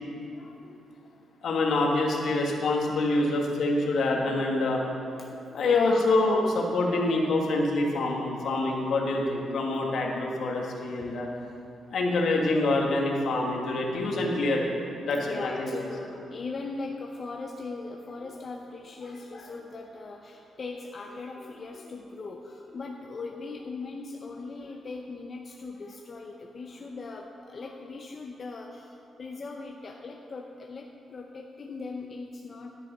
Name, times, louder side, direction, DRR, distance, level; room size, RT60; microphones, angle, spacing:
voice 1, 0.3-1.2 5.1-6.1 10.4-10.6 11.0-11.1 15.1-32.7, left 3 dB, 35° left, 0 dB, 0.6 m, -40 dB
voice 2, 1.4-4.8 5.5-11.3 11.9-14.7 15.0-15.8, left 2 dB, 60° left, -1 dB, 1.6 m, -26 dB
10.5 x 8.9 x 5.4 m, 2.6 s
wide cardioid pair, 160°, 0 cm